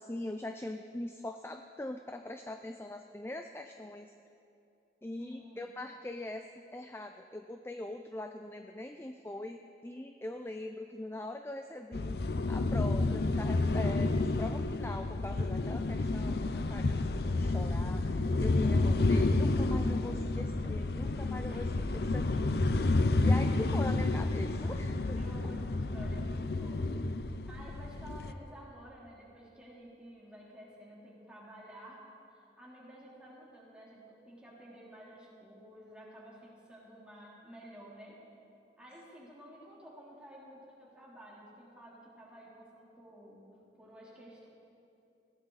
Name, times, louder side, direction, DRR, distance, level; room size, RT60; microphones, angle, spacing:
voice 1, 0.0-4.1 5.0-6.4 6.7-12.2 12.5-21.7 22.1-22.6 23.2-25.2, left 1 dB, 15° left, 6 dB, 0.4 m, -42 dB
voice 2, 5.2-5.6 18.7-19.1 21.5-22.3 25.1-38.2 38.8-43.5 43.8-44.5, equal, 5° right, -6 dB, 3.5 m, -52 dB
sound 1, 11.9-28.3, left 2 dB, 60° left, 0.6 m, -30 dB
19.5 x 16.0 x 4.1 m, 2.6 s
head